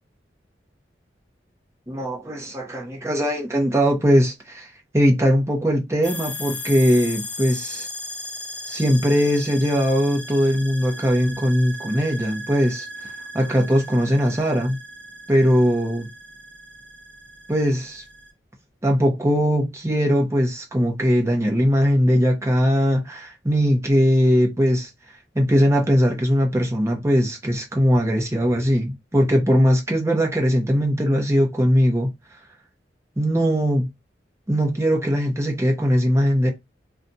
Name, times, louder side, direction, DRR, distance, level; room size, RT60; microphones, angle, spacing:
voice 1, 1.9-4.7 4.9-7.9 8.7-13.1 13.3-14.8 15.3-16.1 17.5-18.0 18.8-24.9 25.3-32.1 33.2-33.9 34.5-36.5, equal, 15° right, 0.8 m, -20 dB
sound 1, 6.0-18.3, left 1 dB, 5° left, 0.5 m, -37 dB
2.5 x 2.4 x 4.0 m
head